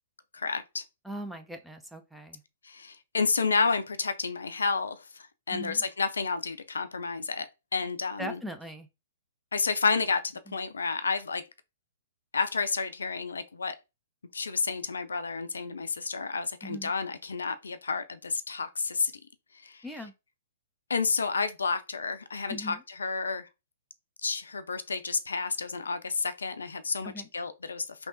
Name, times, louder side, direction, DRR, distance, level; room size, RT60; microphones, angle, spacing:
voice 1, 0.3-0.8 2.6-8.4 9.5-11.4 12.3-13.8 14.3-19.1 19.5-19.8 20.9-23.5 24.2-28.1, left 4 dB, 70° left, 0.4 m, -30 dB
voice 2, 1.0-2.4 5.5-5.8 8.2-8.9 10.5-10.6 16.6-16.9 19.8-20.1 22.5-22.8 27.0-27.3, equal, ahead, 0.4 m, -40 dB
3.3 x 2.9 x 2.6 m
figure-of-eight pair, 115°, 0 cm